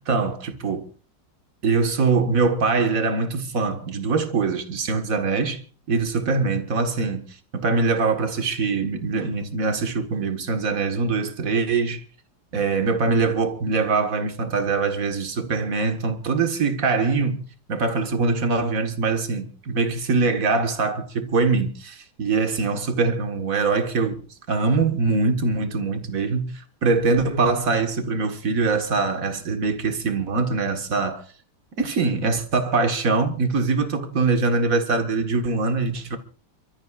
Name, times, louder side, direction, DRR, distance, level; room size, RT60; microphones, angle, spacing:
voice 1, 0.1-0.9 1.6-5.6 5.9-7.3 7.5-12.0 12.5-17.4 17.7-24.2 24.5-31.2 31.8-36.2, right 4 dB, 50° right, 2.0 m, -23 dB
29.5 x 13.5 x 2.5 m
omnidirectional pair, 2.0 m